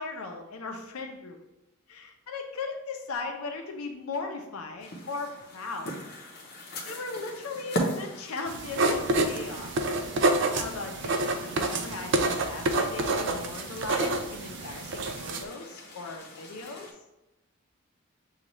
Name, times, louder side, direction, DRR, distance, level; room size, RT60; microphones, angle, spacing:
voice 1, 0.0-1.4 1.9-6.0 6.8-9.8 10.2-16.9, left 3 dB, 85° left, 3 dB, 0.6 m, -38 dB
sound 1, 4.8-16.9, equal, 50° left, 0.7 m, -40 dB
sound 2, 8.5-15.4, right 2 dB, 55° right, 0.4 m, -28 dB
6.5 x 2.4 x 3.0 m, 0.97 s
head